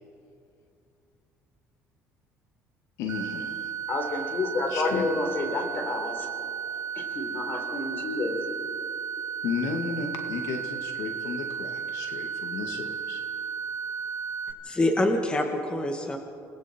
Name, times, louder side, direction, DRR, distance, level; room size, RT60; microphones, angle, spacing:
voice 1, 3.0-3.7 4.7-5.0 9.4-13.2, left 5 dB, 80° left, 4 dB, 2.2 m, -33 dB
sound 1, 3.1-14.5, right 7 dB, 60° right, 5.1 m, -34 dB
voice 2, 3.9-6.3 7.0-8.4, left 3 dB, 40° left, 4 dB, 4.3 m, -30 dB
voice 3, 14.6-16.2, left 1 dB, 20° left, 3 dB, 2.0 m, -25 dB
29.5 x 20.0 x 4.6 m, 2.5 s
cardioid pair, 105°, 6 cm